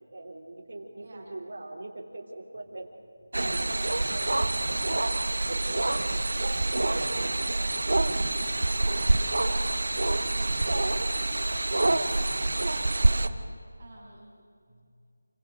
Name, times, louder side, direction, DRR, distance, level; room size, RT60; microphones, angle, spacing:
voice 1, 0.1-2.9 3.4-4.9 5.5-6.1, right 2 dB, 45° right, -4 dB, 3.3 m, -41 dB
voice 2, 0.9-1.3 7.0-7.3 11.7-12.4 12.8-13.5 13.8-14.4, right 2 dB, 20° right, -7 dB, 6.0 m, -47 dB
Frogs Night Jungle, 3.3-13.3, right 2 dB, 60° right, 1.1 m, -26 dB
voice 3, 8.2-11.3 14.7-14.9, equal, 10° left, -7 dB, 3.0 m, -53 dB
28.0 x 24.5 x 5.1 m, 2.3 s
figure-of-eight pair, 180°, 0 cm